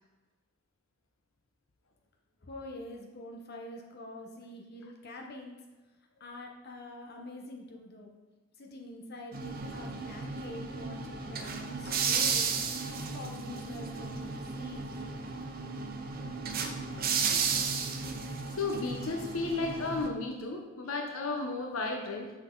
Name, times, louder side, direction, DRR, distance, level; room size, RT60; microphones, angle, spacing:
voice 1, 2.4-5.6 6.2-8.2 8.6-12.5 12.9-15.0, left 1 dB, 50° left, 1 dB, 1.0 m, -45 dB
sound 1, 9.3-20.1, right 5 dB, 45° right, 0.7 m, -34 dB
voice 2, 18.6-22.3, left 3 dB, 85° left, 2 dB, 0.8 m, -33 dB
6.5 x 6.0 x 3.9 m, 1.2 s
head